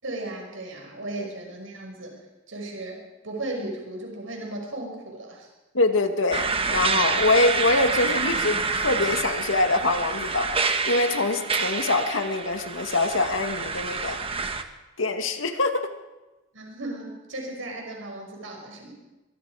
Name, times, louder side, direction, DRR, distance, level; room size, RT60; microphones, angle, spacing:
voice 1, 0.0-2.1 2.5-3.0 3.2-5.5 16.5-18.9, right 2 dB, 80° right, 1 dB, 5.8 m, -35 dB
voice 2, 5.7-14.2 15.0-15.9, left 2 dB, 80° left, 6 dB, 2.1 m, -24 dB
sound 1, 6.3-14.6, right 4 dB, 30° right, 1.4 m, -27 dB
24.0 x 23.5 x 5.0 m, 1.1 s
head